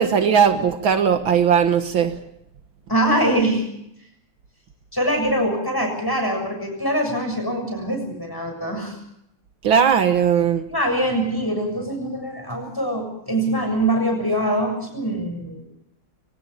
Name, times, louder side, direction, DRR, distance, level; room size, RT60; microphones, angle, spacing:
voice 1, 0.0-2.2 9.6-10.7, right 7 dB, 70° right, 8 dB, 2.1 m, -18 dB
voice 2, 2.9-3.6 4.9-9.0 10.7-15.6, right 1 dB, 10° left, 4 dB, 6.9 m, -23 dB
24.5 x 18.0 x 7.0 m, 0.76 s
omnidirectional pair, 2.3 m